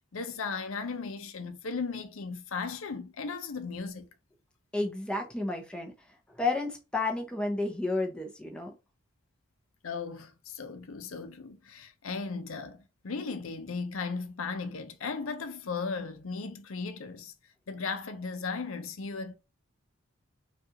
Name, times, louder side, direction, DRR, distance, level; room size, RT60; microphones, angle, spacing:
voice 1, 0.1-4.1 9.8-17.3 17.7-19.4, left 4 dB, 75° left, 0.6 m, -36 dB
voice 2, 4.7-5.9 6.3-8.7, left 2 dB, 5° left, 0.6 m, -31 dB
5.2 x 2.4 x 2.8 m
head